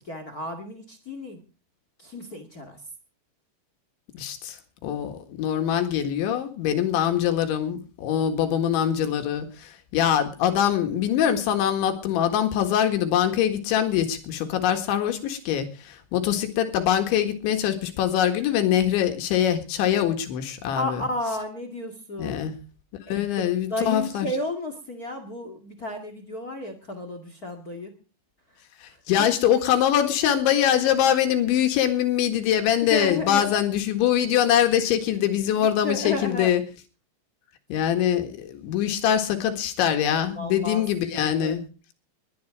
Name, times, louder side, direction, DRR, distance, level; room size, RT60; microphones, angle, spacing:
voice 1, 0.0-1.4 2.0-2.8 20.8-22.4 23.1-27.9 28.9-29.2 32.8-33.5 35.5-36.5 40.3-40.8 41.1-41.6, left 2 dB, 50° left, 8 dB, 1.0 m, -32 dB
voice 2, 4.1-4.6 4.8-21.1 22.2-22.6 23.1-24.3 28.8-36.6 37.7-41.6, left 10 dB, 75° left, 6 dB, 4.1 m, -23 dB
21.0 x 11.5 x 4.8 m, 0.36 s
omnidirectional pair, 5.4 m